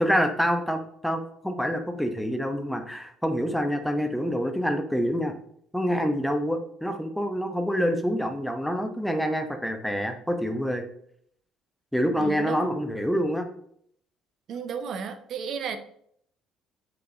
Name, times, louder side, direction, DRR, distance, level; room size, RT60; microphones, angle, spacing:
voice 1, 0.0-5.3 5.7-10.8 11.9-13.4, equal, ahead, 5 dB, 0.9 m, -26 dB
voice 2, 12.2-12.6 14.5-15.8, right 6 dB, 50° right, 9 dB, 0.6 m, -33 dB
8.2 x 3.9 x 2.9 m, 0.67 s
figure-of-eight pair, 50°, 0 cm